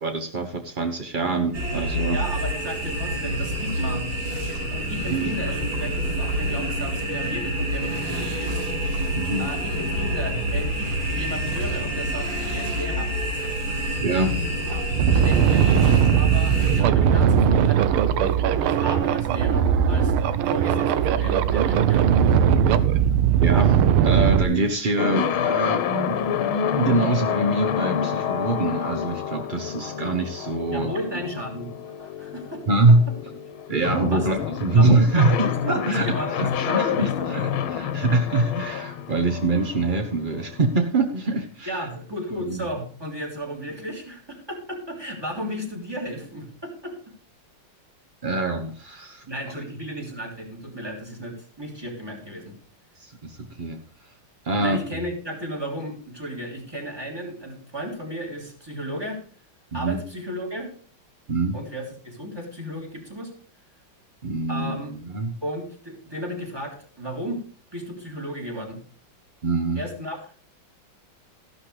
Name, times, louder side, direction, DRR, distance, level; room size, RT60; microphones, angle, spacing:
voice 1, 0.0-2.2 5.1-5.3 9.1-9.5 14.0-14.4 23.4-23.8 24.0-26.2 26.7-30.9 32.7-33.1 33.7-41.9 42.5-42.6 48.2-49.3 53.0-53.8 54.4-54.8 59.7-60.0 61.3-61.6 64.2-64.8 65.0-65.3 69.4-69.8, right 2 dB, 45° right, 6 dB, 0.6 m, -24 dB
sound 1, 1.5-16.8, equal, 70° right, 5.1 m, -27 dB
voice 2, 2.1-4.1 4.7-8.6 9.4-13.1 14.7-22.6 30.7-31.7 32.0-33.0 34.1-34.4 34.7-37.4 41.7-46.9 49.3-52.5 54.5-59.2 59.7-60.7 61.5-63.3 64.5-64.9 65.4-67.4 67.7-68.8 69.7-70.4, equal, 10° right, 1 dB, 3.1 m, -34 dB
sound 2, 14.0-14.1 14.6-24.4, right 8 dB, 90° right, 1.7 m, -19 dB
sound 3, 25.0-40.7, left 8 dB, 80° left, 1.7 m, -28 dB
14.0 x 12.0 x 3.3 m, 0.41 s
omnidirectional pair, 2.3 m